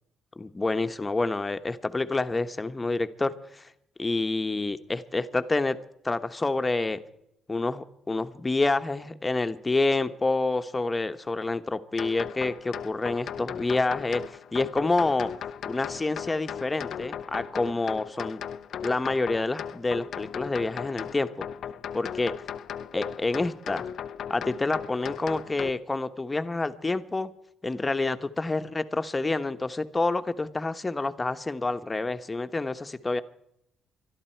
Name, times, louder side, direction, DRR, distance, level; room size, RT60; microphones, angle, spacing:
voice 1, 0.4-3.7 4.0-5.8 6.0-7.0 7.5-15.3 15.6-18.4 18.8-21.5 21.9-22.4 22.9-23.9 24.3-27.3 27.6-33.2, left 3 dB, 25° left, 10 dB, 1.1 m, -28 dB
sound 1, 12.0-25.7, left 8 dB, 65° left, 0.6 m, -37 dB
25.0 x 12.0 x 4.6 m, 0.80 s
supercardioid pair, 65°, 0 cm